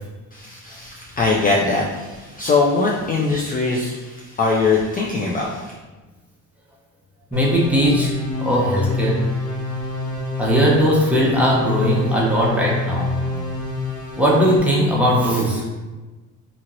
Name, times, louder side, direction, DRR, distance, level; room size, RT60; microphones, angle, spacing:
voice 1, 0.3-5.7, left 3 dB, 25° left, -2 dB, 0.4 m, -21 dB
sound 1, 7.3-14.6, left 3 dB, 85° left, 1.0 m, -27 dB
voice 2, 7.3-8.1 8.4-9.2 10.4-13.1 14.2-15.6, equal, 5° right, -5 dB, 0.9 m, -18 dB
2.8 x 2.8 x 2.6 m, 1.2 s
supercardioid pair, 75°, 34 cm